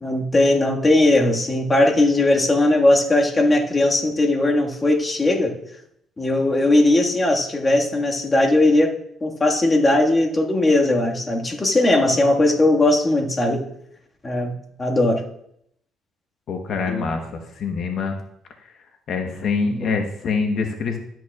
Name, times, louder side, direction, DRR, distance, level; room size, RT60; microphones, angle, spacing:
voice 1, 0.0-5.5 6.2-8.9 9.2-13.6 14.2-15.2 16.9-17.2 19.7-20.0, left 2 dB, 25° left, 0 dB, 1.7 m, -19 dB
voice 2, 16.5-18.1 19.1-21.0, left 4 dB, 60° left, 4 dB, 1.0 m, -25 dB
12.5 x 9.2 x 2.4 m, 0.73 s
cardioid pair, 85°, 0 cm